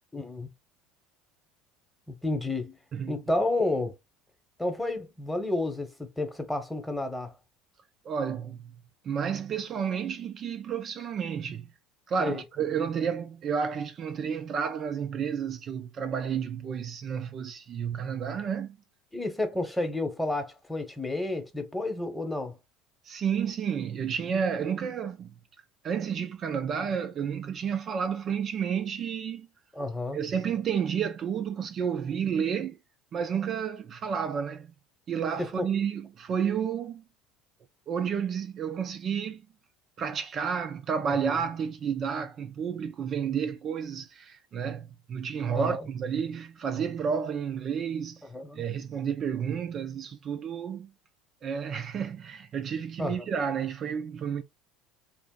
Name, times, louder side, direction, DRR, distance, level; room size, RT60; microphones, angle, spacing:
voice 1, 0.1-0.5 2.1-2.8 3.1-3.9 4.6-7.3 12.2-12.4 19.1-22.6 29.7-30.2 35.4-35.7 45.5-45.8 48.3-48.6 53.0-53.2, left 2 dB, 5° left, 0.9 m, -30 dB
voice 2, 8.0-11.7 12.1-18.8 23.0-25.3 25.8-29.5 30.1-32.8 33.1-34.7 35.1-37.0 37.9-39.4 40.0-48.2 48.5-50.9 51.4-54.4, right 7 dB, 45° right, 0.4 m, -31 dB
2.5 x 2.1 x 3.7 m
hypercardioid pair, 85°, 0 cm